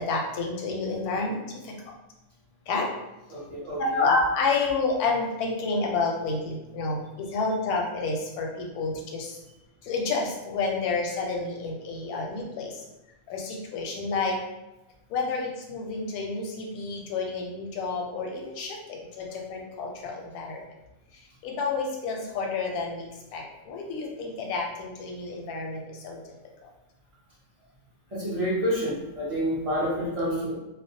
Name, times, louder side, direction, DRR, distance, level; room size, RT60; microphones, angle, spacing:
voice 1, 0.0-1.3 2.7-2.9 3.9-8.5 8.8-9.3 9.9-12.7 13.3-14.4 15.1-18.7 19.5-20.6 21.4-23.0 23.3-23.4 23.7-25.8 26.0-26.2, left 3 dB, 85° left, 0 dB, 1.1 m, -29 dB
voice 2, 3.3-4.1 28.1-30.5, equal, 45° right, -7 dB, 0.4 m, -28 dB
2.5 x 2.0 x 2.6 m, 0.96 s
omnidirectional pair, 1.5 m